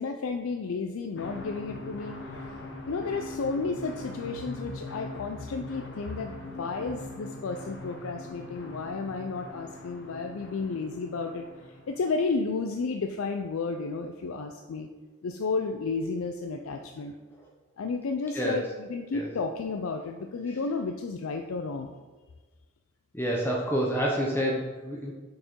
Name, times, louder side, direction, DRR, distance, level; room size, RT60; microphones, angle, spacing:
voice 1, 0.0-2.2 2.9-14.9 15.2-17.1 17.8-22.0, left 4 dB, 70° left, 4 dB, 0.4 m, -32 dB
sound 1, 1.2-12.3, left 2 dB, 55° left, 0.8 m, -42 dB
voice 2, 23.1-25.1, equal, 10° left, -2 dB, 0.6 m, -28 dB
6.2 x 4.4 x 4.5 m, 1.3 s
head